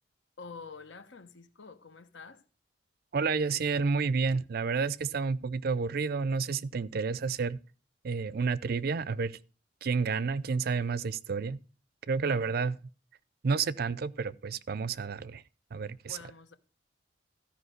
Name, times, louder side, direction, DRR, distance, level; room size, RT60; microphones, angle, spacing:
voice 1, 0.4-2.4 12.2-12.8 16.1-16.6, left 4 dB, 75° left, 1.0 m, -48 dB
voice 2, 3.1-7.6 8.0-9.4 9.8-11.6 12.1-12.7 13.4-15.4 15.7-16.2, right 5 dB, 55° right, 0.5 m, -30 dB
13.5 x 5.1 x 6.4 m
head